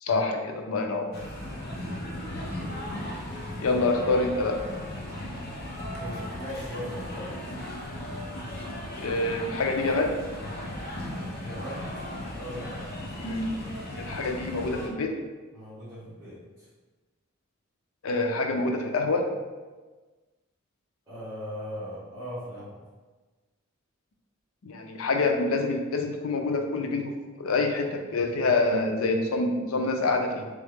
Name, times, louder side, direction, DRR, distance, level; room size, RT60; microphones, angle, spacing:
voice 1, 0.0-1.1 3.6-4.6 9.0-10.1 13.2-13.5 13.9-15.1 18.0-19.3 24.6-27.1 27.4-30.5, left 3 dB, 85° left, 4 dB, 0.5 m, -26 dB
sound 1, 1.1-14.9, left 1 dB, 45° left, 0.9 m, -36 dB
voice 2, 1.3-1.8 3.4-3.8 5.9-7.6 11.4-11.9 12.3-13.1 15.5-16.7 21.1-22.8, equal, 20° right, -16 dB, 1.5 m, -39 dB
3.7 x 3.6 x 3.5 m, 1.3 s
head